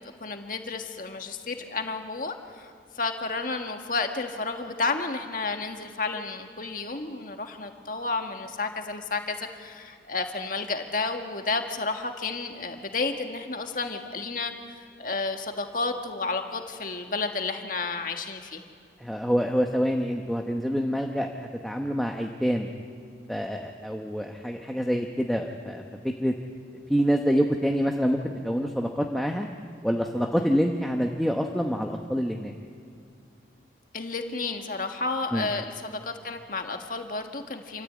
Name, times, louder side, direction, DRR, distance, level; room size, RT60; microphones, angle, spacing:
voice 1, 0.2-14.5 15.0-18.7 33.9-37.8, left 3 dB, 45° left, 5 dB, 1.7 m, -31 dB
voice 2, 19.0-22.7 23.3-25.8 26.2-26.3 26.9-28.2 28.4-29.5 29.8-32.5 35.3-35.5, equal, ahead, 1 dB, 1.0 m, -26 dB
28.0 x 14.0 x 8.7 m, 2.3 s
head